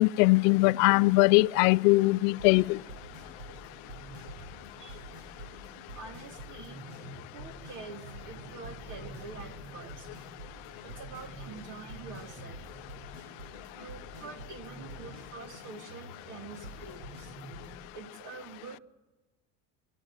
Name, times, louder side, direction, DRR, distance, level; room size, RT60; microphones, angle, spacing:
voice 1, 0.0-2.8, left 23 dB, 85° left, 0.6 m, -21 dB
sound 1, 2.3-17.8, right 1 dB, 80° right, 5.2 m, -47 dB
voice 2, 6.0-6.8 7.3-10.1 10.8-12.6 13.7-17.3 17.9-18.8, right 4 dB, 50° right, 2.7 m, -46 dB
24.0 x 12.5 x 9.0 m
cardioid pair, 130°, 39 cm